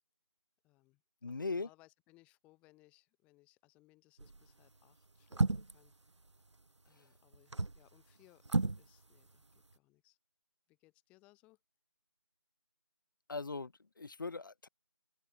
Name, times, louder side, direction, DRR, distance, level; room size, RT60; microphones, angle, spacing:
voice 1, 0.6-1.0 1.3-5.9 6.8-9.4 9.7-10.2 10.7-11.6, left 20 dB, 10° left, 7.3 m, -67 dB
voice 2, 1.2-1.7 13.3-14.7, left 3 dB, 45° left, 1.9 m, -40 dB
sound 1, 4.2-4.5 5.3-5.9 7.3-7.8 8.5-8.9 9.1-9.2, right 3 dB, 85° right, 0.7 m, -32 dB
open air
figure-of-eight pair, 160°, 15 cm